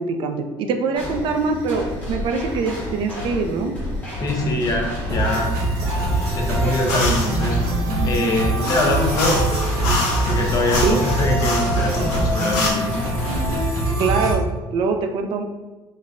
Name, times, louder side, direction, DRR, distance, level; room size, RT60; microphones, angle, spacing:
voice 1, 0.0-3.8 10.8-11.0 14.0-14.5 14.7-15.4, right 4 dB, 55° right, 5 dB, 0.4 m, -23 dB
sound 1, 0.9-13.8, left 1 dB, 15° left, 1.0 m, -31 dB
voice 2, 4.2-5.5 6.4-7.6 8.0-9.4 9.9-10.0 10.2-12.9, left 1 dB, 35° left, 1 dB, 0.5 m, -23 dB
sound 2, 5.1-14.3, right 1 dB, 85° right, 1.3 m, -23 dB
sound 3, 6.9-7.4 8.6-12.7, left 2 dB, 90° left, 1.0 m, -27 dB
4.0 x 2.1 x 2.4 m, 1.2 s
cardioid pair, 145°, 10 cm